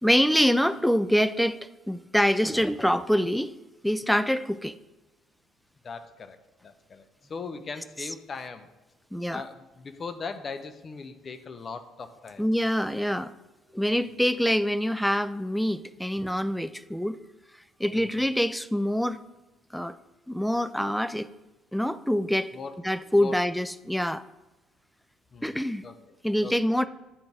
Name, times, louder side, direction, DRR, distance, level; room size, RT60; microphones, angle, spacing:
voice 1, 0.0-1.6 1.9-3.5 3.8-4.7 9.1-9.4 12.4-13.3 13.7-17.2 17.8-19.2 19.7-19.9 20.3-21.3 21.7-22.5 22.8-24.2 25.4-25.9 26.2-26.9, equal, ahead, 13 dB, 0.3 m, -25 dB
voice 2, 5.8-8.7 9.3-12.4 17.9-18.2 22.5-22.8 23.2-23.3 25.3-26.0 26.4-26.5, left 4 dB, 40° left, 9 dB, 0.6 m, -39 dB
9.9 x 3.9 x 3.6 m, 1.1 s
figure-of-eight pair, 50°, 0 cm